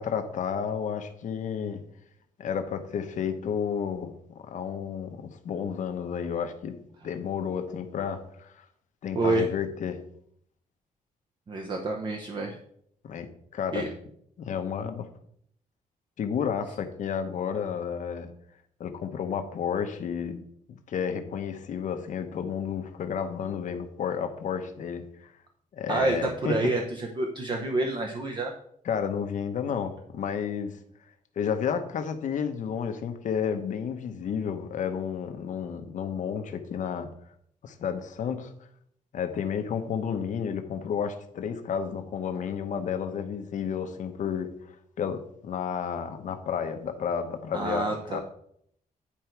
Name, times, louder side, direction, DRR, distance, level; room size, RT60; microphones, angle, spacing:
voice 1, 0.0-1.8 2.4-6.7 7.0-8.6 9.0-10.0 13.0-13.3 13.5-13.9 14.4-15.1 16.2-18.3 18.8-20.4 20.7-25.3 25.7-26.7 28.8-30.7 31.4-37.1 37.6-38.5 39.1-44.5 45.0-48.2, left 7 dB, 60° left, 7 dB, 1.0 m, -31 dB
voice 2, 9.1-9.5 11.5-12.6 13.7-13.9 25.9-26.2 26.4-28.5 47.5-48.2, right 2 dB, 35° right, 2 dB, 0.8 m, -28 dB
10.0 x 4.6 x 4.6 m, 0.69 s
wide cardioid pair, 155°, 15 cm